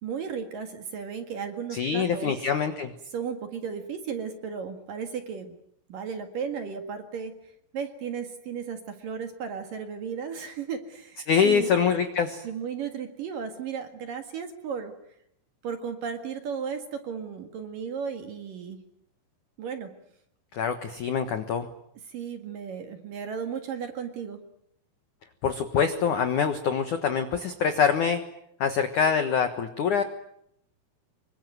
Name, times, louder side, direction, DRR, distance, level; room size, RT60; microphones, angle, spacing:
voice 1, 0.0-2.4 3.1-5.6 5.9-7.3 7.7-11.7 12.4-14.9 15.6-18.8 19.6-19.9 22.1-24.4, right 6 dB, 55° right, 7 dB, 2.9 m, -35 dB
voice 2, 1.7-2.9 11.3-12.4 20.5-21.7 25.4-28.2 28.6-30.0, left 6 dB, 80° left, 9 dB, 1.7 m, -25 dB
26.0 x 23.5 x 9.3 m, 0.74 s
omnidirectional pair, 5.9 m